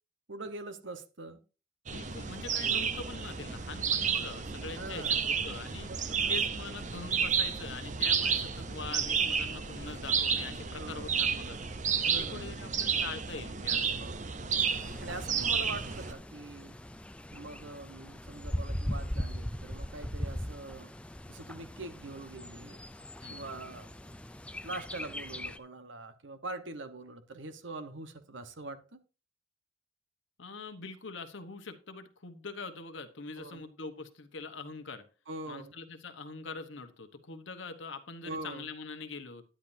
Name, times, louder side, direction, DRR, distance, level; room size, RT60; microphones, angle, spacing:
voice 1, 0.3-1.4 2.6-2.9 4.8-5.2 5.9-6.0 6.2-6.3 10.7-11.3 12.0-12.6 14.0-14.4 14.7-16.7 17.3-20.9 21.3-22.8 23.3-24.1 24.6-29.0 33.4-33.6 35.3-35.7 38.2-38.7, right 2 dB, 70° right, 1.2 m, -43 dB
voice 2, 1.9-5.9 6.3-11.6 12.2-14.0 23.2-23.5 30.4-35.0 35.5-39.4, left 4 dB, 70° left, 1.1 m, -43 dB
sound 1, 1.9-16.1, right 6 dB, 40° right, 0.7 m, -31 dB
Bird, 14.6-25.6, equal, 5° left, 0.4 m, -40 dB
10.5 x 10.0 x 2.7 m
head